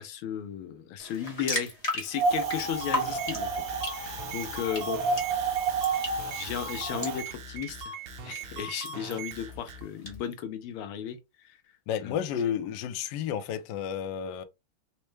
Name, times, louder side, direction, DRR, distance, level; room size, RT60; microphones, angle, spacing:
voice 1, 0.0-3.5 3.9-5.0 5.9-6.1 6.3-11.6 12.0-12.2, left 9 dB, 90° left, 1.6 m, -35 dB
sound 1, 1.0-10.1, left 1 dB, 45° left, 0.5 m, -38 dB
Wind, 2.1-7.2, right 4 dB, 60° right, 0.8 m, -30 dB
sound 2, 2.8-10.2, right 4 dB, 80° right, 1.5 m, -41 dB
voice 2, 11.9-14.4, left 9 dB, 70° left, 1.1 m, -31 dB
4.2 x 2.1 x 3.1 m
omnidirectional pair, 2.3 m